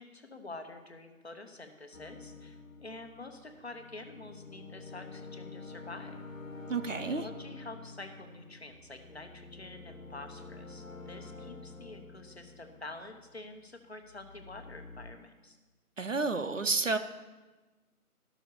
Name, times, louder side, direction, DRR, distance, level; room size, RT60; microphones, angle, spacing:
voice 1, 0.0-6.2 7.1-15.6, left 2 dB, 45° left, 6 dB, 1.0 m, -47 dB
sound 1, 1.9-13.6 14.0-15.1, left 3 dB, 60° left, 1.4 m, -48 dB
voice 2, 6.7-7.3 16.0-17.0, right 4 dB, 55° right, 10 dB, 0.7 m, -30 dB
12.0 x 6.2 x 6.8 m, 1.2 s
figure-of-eight pair, 170°, 45 cm